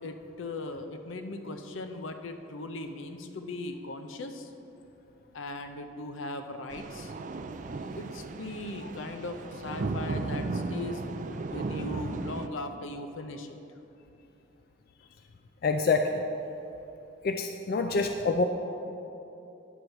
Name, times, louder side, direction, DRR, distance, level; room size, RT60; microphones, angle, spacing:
voice 1, 0.0-4.5 5.3-7.1 8.0-11.0 11.5-13.6, left 2 dB, 80° left, 7 dB, 0.6 m, -39 dB
sound 1, 6.7-12.5, right 3 dB, 40° right, 0.3 m, -35 dB
voice 2, 15.6-16.2 17.2-18.4, left 3 dB, 50° left, 6 dB, 0.3 m, -26 dB
9.9 x 4.6 x 6.4 m, 2.9 s
head